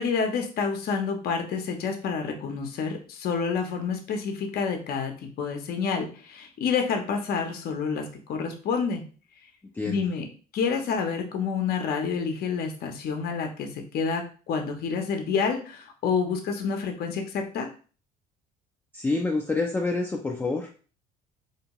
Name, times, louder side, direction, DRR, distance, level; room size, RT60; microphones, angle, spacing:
voice 1, 0.0-9.0 9.8-10.2 10.5-17.7, left 5 dB, 55° left, 4 dB, 0.7 m, -28 dB
voice 2, 9.7-10.1 18.9-20.7, left 3 dB, 10° left, 1 dB, 0.4 m, -27 dB
2.7 x 2.2 x 2.9 m, 0.38 s
supercardioid pair, 75°, 19 cm